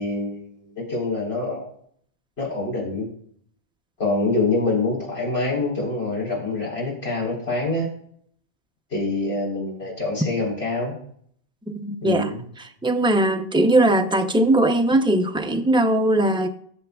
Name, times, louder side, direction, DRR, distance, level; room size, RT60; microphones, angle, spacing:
voice 1, 0.0-1.7 2.4-3.1 4.0-7.9 8.9-10.9 12.0-12.4, left 2 dB, 65° left, 4.1 m, -25 dB
voice 2, 11.7-12.3 12.8-16.5, right 1 dB, 5° right, 0.4 m, -20 dB
17.0 x 6.8 x 2.3 m
omnidirectional pair, 1.2 m